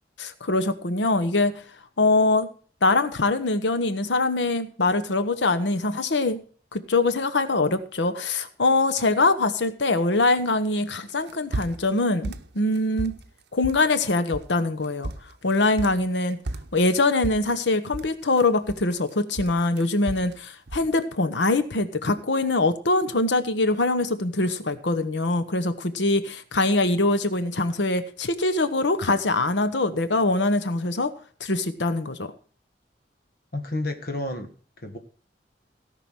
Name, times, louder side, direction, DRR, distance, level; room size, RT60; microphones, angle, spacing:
voice 1, 0.2-1.5 2.0-2.5 2.8-6.4 6.7-13.1 13.5-15.1 15.4-16.4 16.7-31.1 31.4-32.3, left 2 dB, 80° left, 12 dB, 1.0 m, -23 dB
sound 1, 11.1-12.0 12.2-13.3 13.6-14.1 14.3-14.6 14.8-16.1 16.5-19.1 19.4-20.4 20.7-20.9, right 2 dB, 65° right, 0.8 m, -34 dB
voice 2, 33.5-35.0, left 1 dB, 60° left, 7 dB, 1.6 m, -31 dB
17.0 x 6.0 x 6.0 m, 0.42 s
head